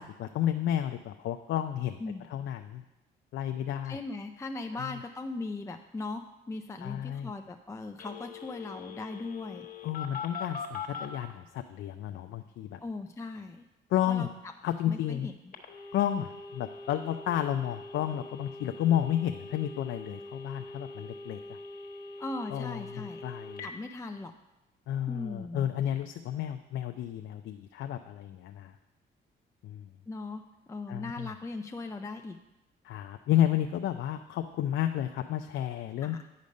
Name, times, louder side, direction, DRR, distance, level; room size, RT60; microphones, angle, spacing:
voice 1, 0.0-2.0 2.3-2.8 3.3-4.0 4.8-4.9 6.8-7.3 9.8-12.8 13.9-14.3 14.6-15.3 15.9-21.6 22.5-23.6 24.9-28.8 29.6-29.9 30.9-31.3 32.8-36.2, left 11 dB, 75° left, 6 dB, 0.5 m, -31 dB
voice 2, 3.8-9.7 12.8-13.7 14.1-14.3 14.9-15.5 22.2-23.2 23.6-24.3 25.1-25.7 30.1-30.4 30.7-32.4 36.0-36.2, left 3 dB, 15° left, 5 dB, 0.4 m, -39 dB
Telephone, 8.0-11.1 15.5-23.7, left 4 dB, 45° left, 1.3 m, -43 dB
9.6 x 5.2 x 5.2 m, 0.96 s
cardioid pair, 90°, 20 cm